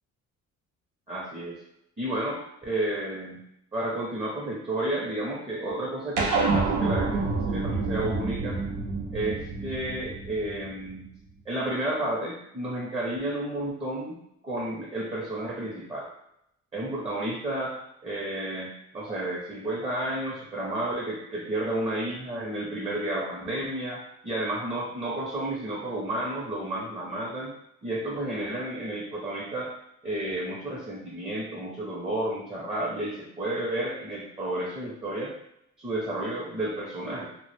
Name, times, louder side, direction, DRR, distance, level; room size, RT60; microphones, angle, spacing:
voice 1, 1.1-1.6 2.0-3.4 3.7-8.6 9.1-11.1 11.5-14.2 14.4-16.1 16.7-17.8 18.0-27.5 27.8-29.7 30.0-35.3 35.8-37.3, right 1 dB, 20° right, -4 dB, 0.6 m, -31 dB
sound 1, 6.2-10.9, right 3 dB, 85° right, 0.6 m, -28 dB
2.1 x 2.1 x 3.1 m, 0.78 s
cardioid pair, 90°, 30 cm